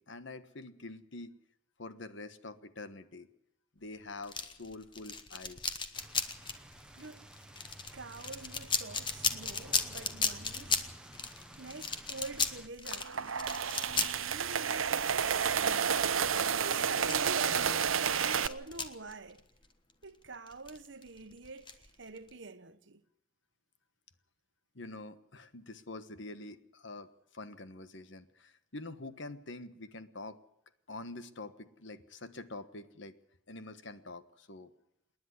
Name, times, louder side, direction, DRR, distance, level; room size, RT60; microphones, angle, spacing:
voice 1, 0.0-1.3 1.8-3.3 3.7-5.7 24.7-30.4 30.9-33.1 33.5-34.7, left 2 dB, 65° left, 1.3 m, -46 dB
sound 1, 4.2-19.6 19.9-20.0 20.5-22.3, left 5 dB, 25° left, 1.3 m, -36 dB
sound 2, 5.9-12.7, right 1 dB, 5° right, 1.2 m, -52 dB
voice 2, 6.9-7.3 7.9-10.8 11.6-13.4 14.2-15.9 16.6-19.5 20.0-23.0, right 3 dB, 60° right, 1.1 m, -46 dB
sound 3, 12.9-18.5, right 7 dB, 80° right, 0.8 m, -30 dB
27.5 x 10.5 x 9.7 m
head